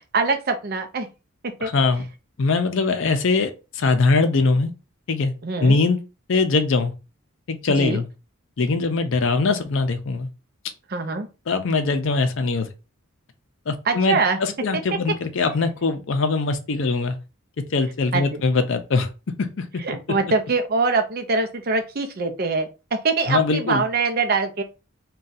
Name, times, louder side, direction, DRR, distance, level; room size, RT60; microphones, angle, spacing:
voice 1, 0.1-1.1 1.4-1.7 5.4-5.8 7.8-8.0 10.9-11.3 13.9-14.4 18.1-18.4 19.8-24.6, right 4 dB, 45° right, 0.5 m, -23 dB
voice 2, 1.6-2.0 2.4-4.7 5.1-5.3 5.6-6.0 6.3-6.9 7.5-8.1 8.6-10.3 11.5-12.7 13.7-17.2 17.7-19.1 19.4-19.6 23.3-23.8, left 3 dB, 60° left, 0.5 m, -21 dB
2.6 x 2.3 x 3.9 m
head